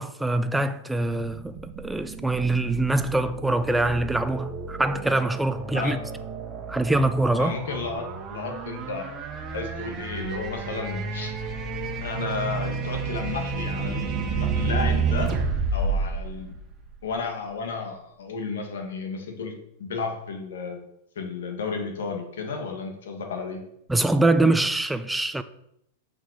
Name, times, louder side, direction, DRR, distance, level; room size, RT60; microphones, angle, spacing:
voice 1, 0.0-6.0 6.7-7.6 23.9-25.4, right 2 dB, 5° right, 0.6 m, -24 dB
sound 1, 1.4-17.2, right 4 dB, 25° right, 1.3 m, -31 dB
voice 2, 7.4-9.1 9.5-11.3 12.0-15.3 15.7-16.5 17.0-19.5 19.8-20.8 21.2-23.6, left 4 dB, 90° left, 2.4 m, -33 dB
7.3 x 6.0 x 6.9 m
supercardioid pair, 150°, 0 cm